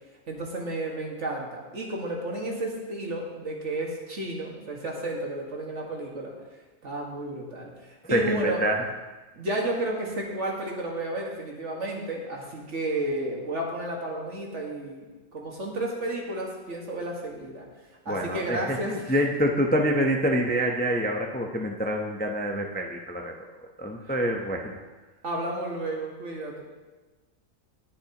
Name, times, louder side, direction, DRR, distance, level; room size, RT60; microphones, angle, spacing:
voice 1, 0.3-6.3 6.8-8.6 9.3-15.1 15.3-19.2 24.1-24.2 25.2-26.6, right 1 dB, 60° right, -1 dB, 2.0 m, -32 dB
voice 2, 8.1-8.7 18.1-23.3 23.8-24.7, equal, 10° left, 1 dB, 0.6 m, -26 dB
20.0 x 7.1 x 3.0 m, 1.2 s
omnidirectional pair, 1.4 m